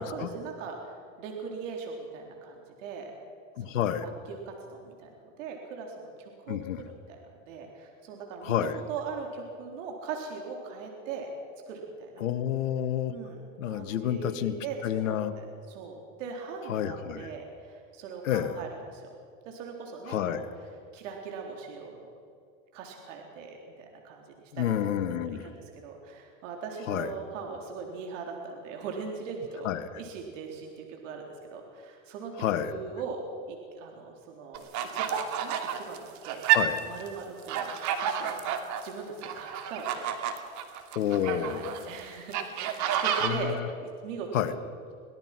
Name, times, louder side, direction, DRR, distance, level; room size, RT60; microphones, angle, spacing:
voice 1, 0.0-3.1 3.6-5.1 5.4-7.2 7.5-11.3 11.7-12.2 13.1-19.2 19.5-20.5 20.9-22.1 22.7-24.7 25.1-29.7 30.0-31.2 31.5-33.2 33.5-36.4 36.9-38.4 38.8-40.1 41.4-44.5, right 5 dB, 70° right, 1 dB, 3.9 m, -40 dB
voice 2, 3.6-4.1 6.5-6.8 8.4-8.8 12.2-13.1 13.6-14.6 14.8-15.3 16.7-17.3 18.2-18.6 20.1-20.5 24.5-25.5 26.9-27.1 29.6-29.9 32.4-32.7 36.5-36.8 41.0-42.0 43.2-43.7 44.3-44.5, left 10 dB, 80° left, 10 dB, 1.6 m, -29 dB
sound 1, 34.5-37.1 37.4-38.9 39.2-41.8 42.3-43.3, right 10 dB, 50° right, 2.7 m, -29 dB
23.5 x 18.5 x 6.0 m, 2.3 s
hypercardioid pair, 110°, 38 cm